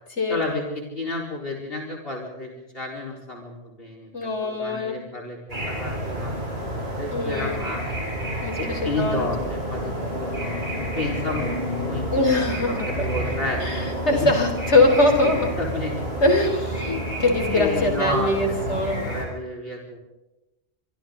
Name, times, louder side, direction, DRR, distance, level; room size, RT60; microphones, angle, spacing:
voice 1, 0.3-5.4 5.7-6.3 7.0-8.0 8.6-12.3 13.0-13.6 14.1-14.3 15.4-15.9 17.5-20.0, left 2 dB, 55° left, -1 dB, 4.5 m, -31 dB
voice 2, 4.1-5.0 7.1-7.6 8.4-9.3 12.1-13.0 13.6-15.5 16.2-19.0, left 2 dB, 75° left, 4 dB, 4.7 m, -22 dB
sound 1, 5.5-19.2, equal, 60° right, 8.0 m, -29 dB
27.5 x 24.0 x 3.9 m, 0.98 s
omnidirectional pair, 1.2 m